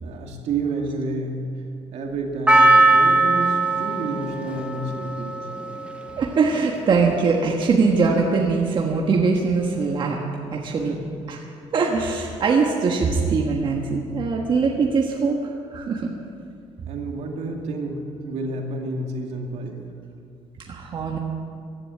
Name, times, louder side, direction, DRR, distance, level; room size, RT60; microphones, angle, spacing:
voice 1, 0.0-1.4 1.9-5.4 10.8-11.0 16.9-19.8, right 2 dB, 70° right, 2 dB, 2.4 m, -30 dB
Percussion, 2.5-6.8 7.1-7.2, right 2 dB, 10° right, 1.4 m, -20 dB
voice 2, 6.2-10.2 10.5-10.9 11.3-11.4 11.7-16.1 20.7-21.2, right 4 dB, 45° right, 0 dB, 1.4 m, -22 dB
15.5 x 11.0 x 7.7 m, 2.4 s
cardioid pair, 125°, 12 cm